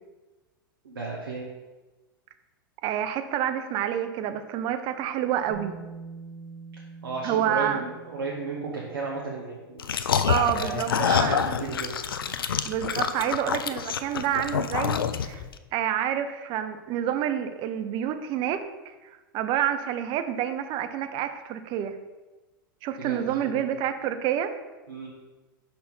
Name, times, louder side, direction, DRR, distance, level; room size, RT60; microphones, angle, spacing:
voice 1, 0.8-1.5 7.0-10.0 10.5-11.9 23.0-23.6 24.9-25.1, right 4 dB, 80° right, -3 dB, 1.2 m, -34 dB
voice 2, 2.8-5.8 7.2-7.8 10.3-11.5 12.6-15.4 15.7-22.0 22.8-24.5, right 10 dB, 45° right, 9 dB, 0.6 m, -28 dB
Bass guitar, 5.5-11.5, right 5 dB, 60° right, 2.0 m, -46 dB
sound 1, 9.8-15.5, left 7 dB, 90° left, 0.4 m, -27 dB
5.8 x 4.4 x 5.5 m, 1.2 s
hypercardioid pair, 105°, 12 cm